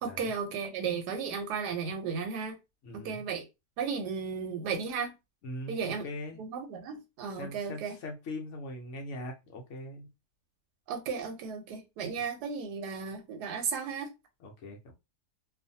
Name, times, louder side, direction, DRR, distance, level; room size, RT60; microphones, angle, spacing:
voice 1, 0.0-2.6 2.9-3.4 3.8-5.1 5.7-6.0 6.4-7.9 10.9-14.1, right 6 dB, 90° right, 1.2 m, -34 dB
voice 2, 2.8-3.2 5.4-6.4 7.4-10.1 12.2-12.3 14.4-14.9, left 1 dB, 60° left, 0.9 m, -41 dB
2.6 x 2.4 x 2.6 m
omnidirectional pair, 1.7 m